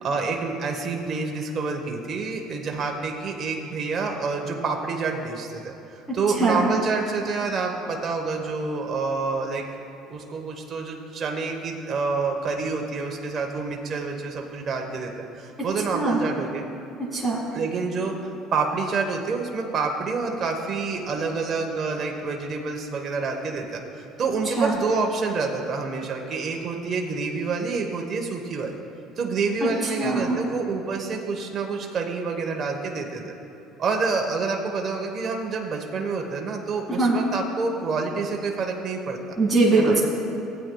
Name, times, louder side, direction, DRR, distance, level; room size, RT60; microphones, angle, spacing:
voice 1, 0.0-5.7 6.1-9.7 10.1-16.6 17.5-28.8 29.2-33.3 33.8-39.2 39.8-40.0, right 4 dB, 40° right, 1 dB, 1.0 m, -28 dB
voice 2, 30.0-30.4 36.9-37.2 39.4-40.0, right 3 dB, 10° right, -7 dB, 2.1 m, -21 dB
16.0 x 9.0 x 2.3 m, 3.0 s
supercardioid pair, 100°, 0 cm